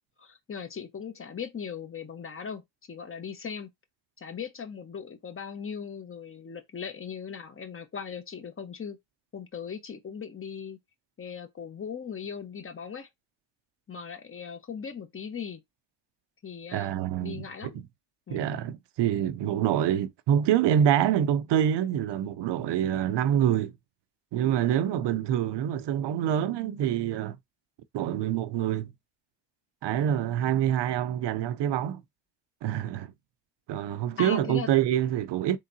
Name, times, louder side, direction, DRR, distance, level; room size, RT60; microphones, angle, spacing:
voice 1, 0.2-2.6 2.9-3.7 4.2-9.0 9.3-10.8 11.2-13.1 13.9-15.6 16.4-17.0 17.2-17.8 18.3-18.6 34.2-34.7, left 6 dB, 25° left, 1.0 m, -38 dB
voice 2, 16.7-17.4 17.7-17.8 18.3-23.7 24.3-27.4 27.9-28.9 29.8-32.0 32.6-33.1 33.7-35.6, right 10 dB, 60° right, 0.7 m, -26 dB
3.8 x 3.6 x 2.7 m
supercardioid pair, 75°, 47 cm